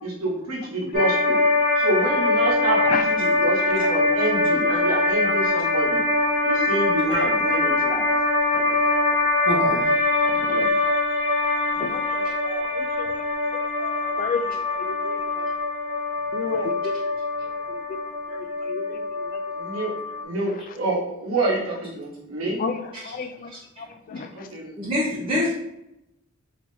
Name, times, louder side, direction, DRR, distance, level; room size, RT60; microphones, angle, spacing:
voice 1, 0.0-1.4 1.8-6.0 6.4-8.1 10.4-10.7 19.5-19.9 20.2-22.6 24.3-24.7, right 2 dB, 75° right, -2 dB, 1.0 m, -28 dB
sound 1, 0.9-20.2, left 2 dB, 55° left, 1.0 m, -23 dB
voice 2, 9.5-9.9 12.2-12.3 23.0-23.1 23.5-23.6 24.7-25.5, left 1 dB, 25° right, -7 dB, 0.8 m, -26 dB
voice 3, 11.8-13.2 13.8-15.5 16.3-16.8 17.7-18.0 18.3-19.3 22.6-22.8 23.0-23.5 23.8-24.5, left 5 dB, 40° left, 8 dB, 0.3 m, -33 dB
3.6 x 2.8 x 2.7 m, 0.86 s
head